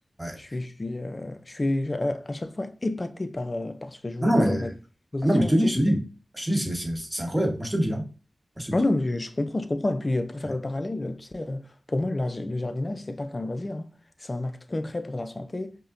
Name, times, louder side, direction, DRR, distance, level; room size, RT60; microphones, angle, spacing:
voice 1, 0.4-4.7 5.1-5.8 8.7-13.9 14.2-15.8, left 2 dB, 40° left, 0.4 m, -30 dB
voice 2, 4.2-4.7 5.2-6.0 6.3-8.1 8.6-8.7, equal, 10° right, 1.2 m, -24 dB
5.3 x 2.1 x 2.5 m
cardioid pair, 40°, 0 cm